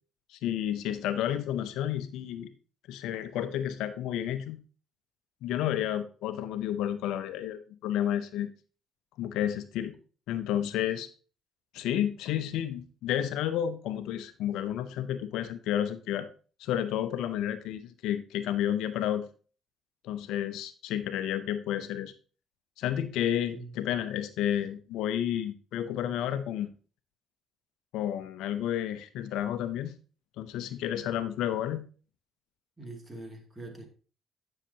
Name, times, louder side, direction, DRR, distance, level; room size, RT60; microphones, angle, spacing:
voice 1, 0.3-2.5 2.9-4.6 5.4-8.5 9.2-9.9 10.3-11.1 11.7-16.3 16.6-19.3 20.0-22.1 22.8-26.7 27.9-29.9 30.4-31.8, left 11 dB, 80° left, 11 dB, 0.7 m, -31 dB
voice 2, 32.8-33.9, right 2 dB, 25° right, 4 dB, 2.5 m, -43 dB
9.9 x 6.5 x 2.9 m, 0.37 s
supercardioid pair, 60°, 0 cm